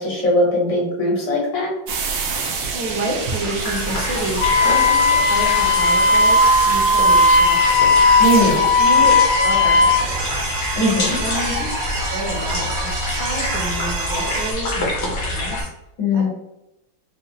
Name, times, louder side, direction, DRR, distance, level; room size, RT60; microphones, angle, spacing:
voice 1, 0.0-1.7 8.2-8.6 10.8-11.2 16.0-16.3, left 1 dB, 70° left, -4 dB, 1.9 m, -19 dB
sound 1, 1.9-14.5, right 4 dB, 90° right, 1.5 m, -28 dB
voice 2, 2.7-8.0 8.5-10.6 11.2-15.7 16.1-16.3, right 2 dB, 70° right, 0 dB, 1.3 m, -29 dB
sound 2, 3.0-15.6, left 1 dB, 50° left, 0.8 m, -26 dB
Wind instrument woodwind instrument, 4.4-10.1, left 3 dB, 85° left, 0.8 m, -15 dB
5.0 x 2.1 x 2.7 m, 0.88 s
omnidirectional pair, 2.2 m